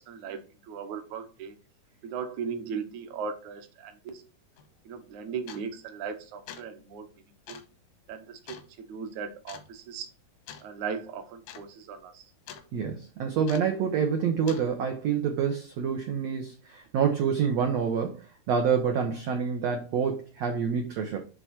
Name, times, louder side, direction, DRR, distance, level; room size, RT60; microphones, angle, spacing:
voice 1, 0.0-1.6 2.0-4.3 4.9-7.1 7.5-7.6 8.1-10.1 10.6-12.3, right 6 dB, 65° right, 2.0 m, -38 dB
sound 1, 4.6-4.7 5.5-5.8 6.3-6.8 7.5-7.7 8.5-8.7 9.5-9.7 10.5-10.7 11.0-11.1 11.4-11.7 11.9-12.7 13.5-13.8 14.5-14.7, left 9 dB, 90° left, 3.0 m, -45 dB
voice 2, 12.7-21.2, right 7 dB, 90° right, 1.4 m, -27 dB
9.6 x 3.7 x 4.3 m
omnidirectional pair, 4.4 m